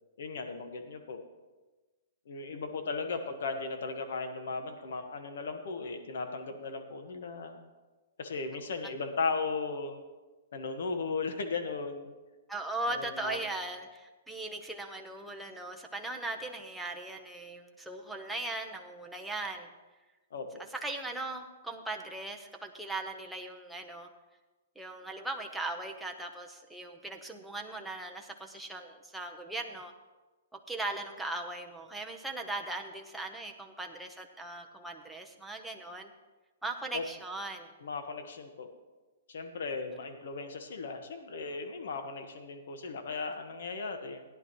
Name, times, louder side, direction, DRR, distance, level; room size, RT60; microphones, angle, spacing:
voice 1, 0.2-1.2 2.3-7.6 8.2-10.0 10.5-12.1 12.9-13.5 20.3-20.6 36.9-37.0 37.8-38.7 39.3-44.2, left 4 dB, 70° left, 6 dB, 1.3 m, -36 dB
voice 2, 12.5-19.7 20.7-24.1 24.8-29.9 30.5-36.1 36.6-37.7, right 2 dB, ahead, 1 dB, 0.9 m, -39 dB
17.0 x 10.5 x 3.1 m, 1.2 s
hypercardioid pair, 150°, 0 cm